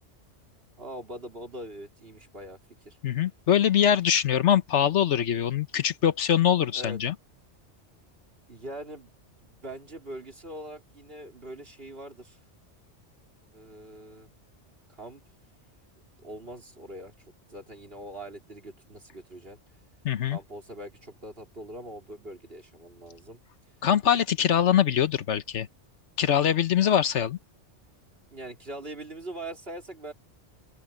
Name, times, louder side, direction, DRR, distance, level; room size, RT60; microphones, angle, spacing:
voice 1, 0.8-2.6 2.8-3.0 6.7-7.0 8.5-9.1 9.4-12.4 13.5-14.3 14.9-15.2 16.2-17.1 17.5-19.6 20.3-23.4 28.3-30.1, right 1 dB, 55° right, 4.1 m, -42 dB
voice 2, 3.0-7.1 20.0-20.4 23.8-25.7 26.2-27.4, left 9 dB, 80° left, 1.2 m, -23 dB
open air
omnidirectional pair, 1.2 m